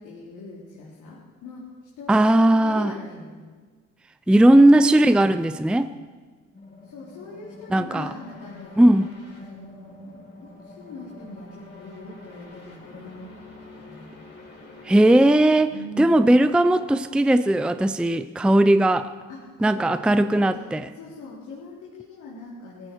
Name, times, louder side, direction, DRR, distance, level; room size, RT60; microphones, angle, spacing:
voice 1, 0.0-1.7 2.0-2.2 2.5-3.3 6.8-8.8 9.4-13.3 13.7-14.1 15.7-16.3 19.3-22.9, left 2 dB, 85° left, -7 dB, 3.5 m, -41 dB
voice 2, 2.1-2.9 4.3-5.9 7.7-8.1 8.8-9.1 14.8-19.1 19.6-20.8, right 1 dB, 5° right, 12 dB, 0.5 m, -18 dB
sound 1, 6.5-17.1, left 2 dB, 35° left, 6.2 m, -47 dB
17.5 x 15.5 x 4.6 m, 1.5 s
cardioid pair, 90°, 30 cm